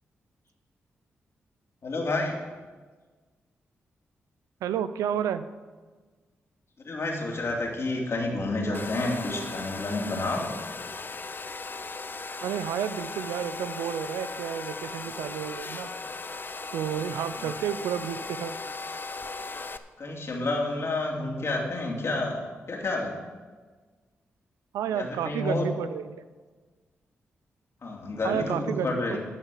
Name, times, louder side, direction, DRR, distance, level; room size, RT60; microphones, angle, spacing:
voice 1, 1.8-2.4 6.8-10.5 17.4-17.5 20.0-23.1 24.9-25.7 27.8-29.2, left 2 dB, 55° left, 0 dB, 2.7 m, -29 dB
voice 2, 4.6-5.5 12.4-15.9 16.7-18.6 24.7-26.2 28.2-29.2, right 9 dB, 85° right, 13 dB, 0.5 m, -31 dB
Domestic sounds home sounds, 8.7-19.8, left 3 dB, 40° left, 0.7 m, -37 dB
12.0 x 5.1 x 8.3 m, 1.4 s
supercardioid pair, 45°, 5 cm